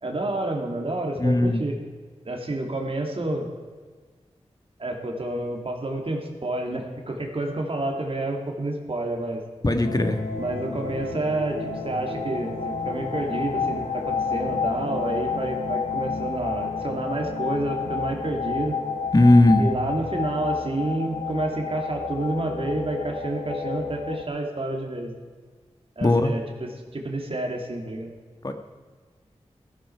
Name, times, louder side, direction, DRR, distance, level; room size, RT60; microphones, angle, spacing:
voice 1, 0.0-1.8 2.2-3.5 4.8-9.4 10.4-18.8 19.6-25.1 26.0-28.1, right 2 dB, 55° right, 2 dB, 2.6 m, -29 dB
voice 2, 1.2-1.6 9.6-10.2 19.1-19.7 26.0-26.3 28.4-28.5, left 1 dB, 35° left, 6 dB, 1.4 m, -18 dB
sound 1, 9.8-24.2, left 5 dB, 90° left, 1.3 m, -30 dB
15.0 x 13.5 x 4.7 m, 1.5 s
wide cardioid pair, 60°, 12 cm